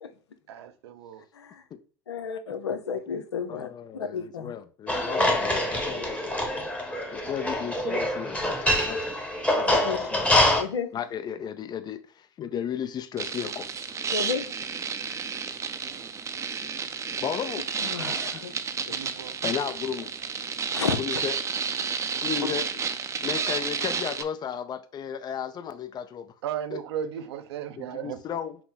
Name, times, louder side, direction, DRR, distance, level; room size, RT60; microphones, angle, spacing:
voice 1, 0.5-1.2 18.9-19.3 26.4-28.2, right 9 dB, 75° right, 0.6 m, -35 dB
voice 2, 2.1-4.5 5.2-5.3 9.7-10.0 10.6-10.9 14.1-14.5 17.8-18.5 18.9-19.1 20.7-21.2 22.4-22.6, left 6 dB, 90° left, 0.7 m, -32 dB
voice 3, 3.5-6.2 6.5-6.7 7.1-9.2 9.5-10.3 10.9-13.7 17.2-17.7 18.5-18.6 19.4-20.1 21.0-21.3 22.2-22.6 23.2-26.3 26.7-26.8 27.8-28.6, left 8 dB, 30° left, 0.5 m, -34 dB
sound 1, 4.9-10.6, left 1 dB, 10° left, 1.0 m, -25 dB
sound 2, 13.2-24.2, right 6 dB, 20° right, 0.5 m, -31 dB
5.8 x 2.1 x 4.0 m
hypercardioid pair, 95°, 14 cm